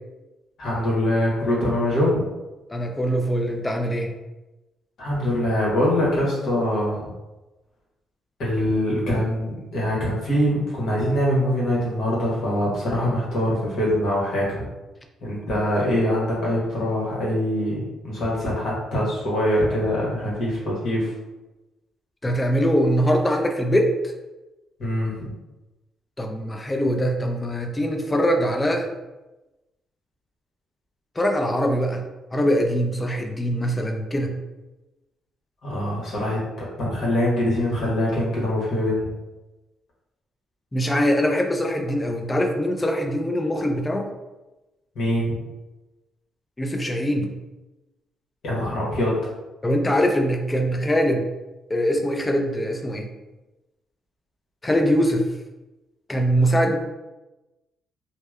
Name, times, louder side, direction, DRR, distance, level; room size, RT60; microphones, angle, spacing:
voice 1, 0.6-2.2 5.0-7.1 8.4-14.6 15.2-21.1 24.8-25.2 35.6-39.1 44.9-45.4 48.4-49.1, left 1 dB, 65° left, -5 dB, 1.1 m, -23 dB
voice 2, 2.7-4.1 22.2-23.9 26.2-28.9 31.2-32.0 32.3-34.3 40.7-44.1 46.6-47.3 49.6-51.2 51.7-53.1 54.6-55.2 56.1-56.8, equal, 20° left, 3 dB, 0.3 m, -22 dB
2.7 x 2.0 x 2.3 m, 1.1 s
cardioid pair, 90°, 0 cm